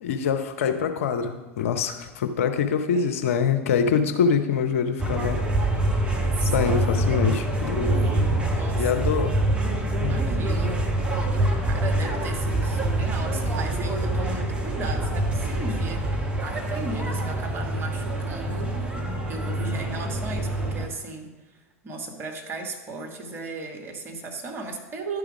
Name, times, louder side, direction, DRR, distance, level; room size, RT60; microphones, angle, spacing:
voice 1, 0.0-5.4 6.4-8.0 8.7-9.4 9.7-10.2, left 6 dB, 65° left, 7 dB, 0.7 m, -25 dB
voice 2, 2.9-3.4 6.4-7.1 7.7-9.0 10.0-10.7 11.6-16.0 16.4-18.9 19.3-21.3 21.8-25.2, right 2 dB, 30° right, 2 dB, 1.5 m, -36 dB
sound 1, 5.0-20.9, right 1 dB, 15° right, 1.1 m, -25 dB
11.0 x 4.9 x 4.9 m, 1.1 s
figure-of-eight pair, 85°, 8 cm